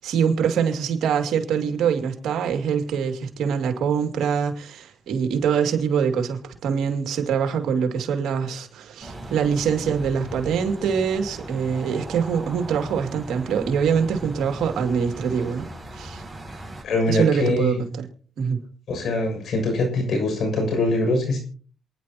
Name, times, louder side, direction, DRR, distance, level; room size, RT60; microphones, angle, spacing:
voice 1, 0.0-15.7 15.9-16.2 17.1-18.1 18.4-18.6, right 7 dB, 75° right, 2.4 m, -24 dB
sound 1, 9.0-16.8, right 1 dB, 15° right, 6.3 m, -38 dB
voice 2, 16.8-17.8 18.9-21.4, left 2 dB, 65° left, 6.8 m, -23 dB
27.5 x 10.5 x 3.0 m
cardioid pair, 90°, 0 cm